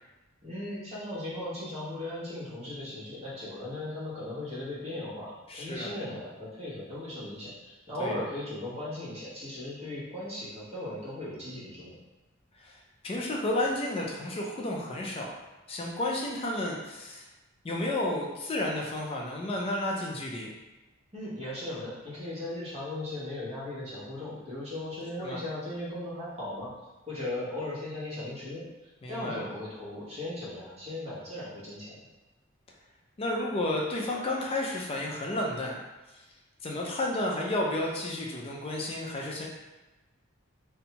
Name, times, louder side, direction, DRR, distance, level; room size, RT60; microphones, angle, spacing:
voice 1, 0.4-5.3 5.6-12.0 21.1-26.7 27.1-28.6 29.1-31.9, left 1 dB, 35° right, -10 dB, 1.1 m, -37 dB
voice 2, 5.5-5.9 8.0-8.2 12.6-15.4 15.7-17.3 17.6-20.5 25.2-25.4 29.0-29.5 33.2-35.8 36.1-36.2 36.6-39.5, left 1 dB, 30° left, -1 dB, 0.4 m, -32 dB
2.6 x 2.2 x 2.8 m, 1.1 s
head